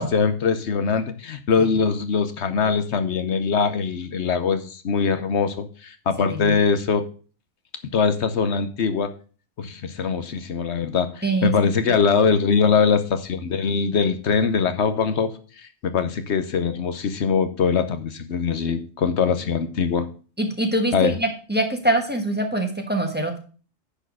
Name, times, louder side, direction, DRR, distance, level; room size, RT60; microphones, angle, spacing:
voice 1, 0.0-7.0 7.8-9.1 9.6-20.1 20.9-21.2, left 5 dB, 70° left, 10 dB, 1.1 m, -22 dB
voice 2, 11.2-11.5 20.4-23.4, right 1 dB, 10° right, 4 dB, 1.4 m, -24 dB
10.0 x 4.6 x 6.2 m, 0.39 s
omnidirectional pair, 1.2 m